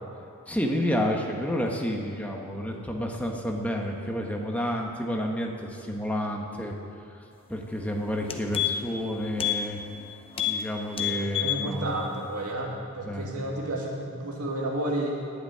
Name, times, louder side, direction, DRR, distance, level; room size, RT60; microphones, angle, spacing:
voice 1, 0.5-6.8 7.5-9.8 10.4-12.2 12.7-13.4, equal, 5° left, 0 dB, 1.2 m, -30 dB
sound 1, 7.7-7.8 8.1-9.0 9.4-9.6 9.9-10.0 10.3-10.6 10.9-11.6 12.0-12.1, left 12 dB, 25° left, 0.8 m, -28 dB
voice 2, 11.0-15.2, right 1 dB, 80° right, -2 dB, 2.2 m, -31 dB
11.0 x 8.2 x 9.7 m, 2.6 s
head